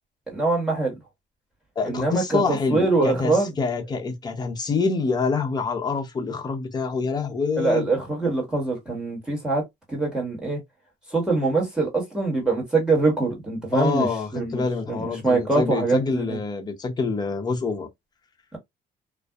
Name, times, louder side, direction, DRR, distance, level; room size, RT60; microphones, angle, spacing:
voice 1, 0.3-0.9 1.8-3.5 7.6-9.6 9.9-10.6 11.1-14.1 14.3-16.4, right 3 dB, 5° right, 1.5 m, -24 dB
voice 2, 1.8-7.9 13.7-17.9, left 4 dB, 25° left, 0.7 m, -26 dB
2.6 x 2.2 x 2.3 m
cardioid pair, 110°, 17 cm